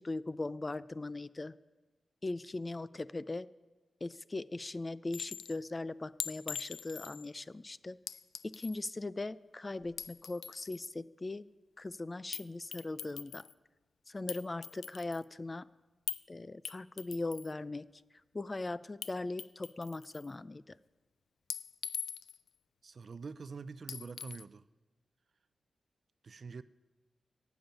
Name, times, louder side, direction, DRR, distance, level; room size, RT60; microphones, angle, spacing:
voice 1, 0.0-1.5 2.2-3.5 4.0-8.0 8.4-11.5 11.8-13.4 14.1-15.7 16.3-17.9 18.3-20.8, left 2 dB, 25° left, 17 dB, 0.4 m, -39 dB
Chink clink, 5.1-5.6 6.2-7.3 8.1-8.8 9.8-10.8 12.3-12.5 12.7-13.5 14.3-15.2 16.1-16.2 16.7-17.5 19.0-19.1 19.4-20.3 21.5-22.5 23.9-24.4, left 7 dB, 90° left, 0.4 m, -42 dB
voice 2, 22.8-24.6 26.2-26.6, right 5 dB, 55° right, 15 dB, 0.5 m, -45 dB
15.0 x 7.2 x 9.0 m, 1.2 s
wide cardioid pair, 95°, 0 cm